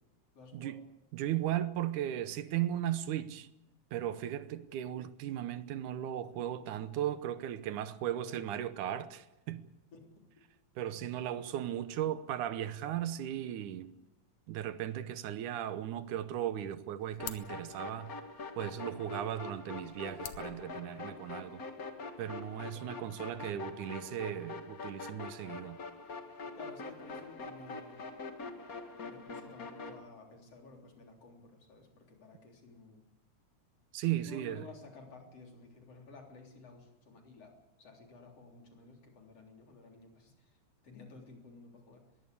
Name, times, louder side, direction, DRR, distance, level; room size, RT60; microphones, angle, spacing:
voice 1, 0.3-0.8 9.9-10.1 10.4-10.5 22.7-22.9 26.6-28.0 29.1-33.0 34.2-40.6 40.8-42.0, left 3 dB, 50° left, 4.5 m, -54 dB
voice 2, 1.1-3.5 3.9-9.7 10.8-13.9 14.5-18.1 18.6-21.6 22.2-25.8 33.9-34.7, right 11 dB, 80° right, 2.4 m, -36 dB
sound 1, 16.5-21.5, left 10 dB, 70° left, 2.5 m, -51 dB
sound 2, 17.2-30.0, left 4 dB, 35° left, 1.7 m, -44 dB
21.5 x 16.0 x 8.4 m
omnidirectional pair, 3.5 m